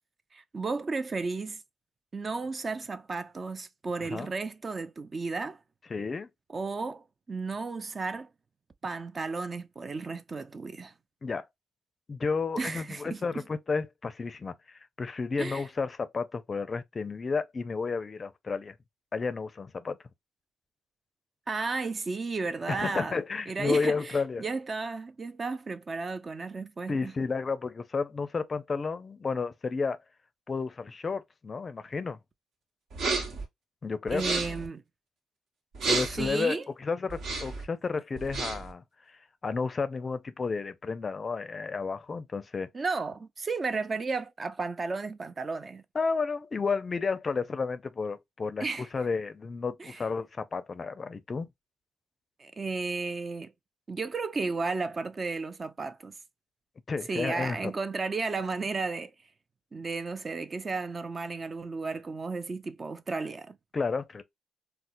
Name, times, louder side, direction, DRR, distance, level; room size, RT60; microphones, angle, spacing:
voice 1, 0.3-1.6 2.1-5.6 6.5-8.3 8.8-10.9 12.6-13.5 15.4-15.7 21.5-27.1 34.1-34.8 35.8-36.6 42.7-45.8 48.6-48.9 49.8-50.0 52.4-53.5 53.9-56.1 57.1-59.1 59.7-63.6, right 4 dB, 35° right, 0.4 m, -33 dB
voice 2, 5.9-6.3 11.2-11.5 12.1-18.7 19.1-20.0 22.7-24.5 26.9-30.0 30.5-32.2 33.8-34.2 35.9-38.8 39.4-42.7 45.9-48.7 48.9-51.5 56.9-57.7 63.7-64.2, left 4 dB, 35° left, 0.4 m, -32 dB
sound 1, 32.9-33.4 34.1-34.7 35.7-36.3 37.1-37.6 38.2-38.7, right 4 dB, 70° right, 1.1 m, -31 dB
4.2 x 2.0 x 2.5 m
cardioid pair, 90°, 0 cm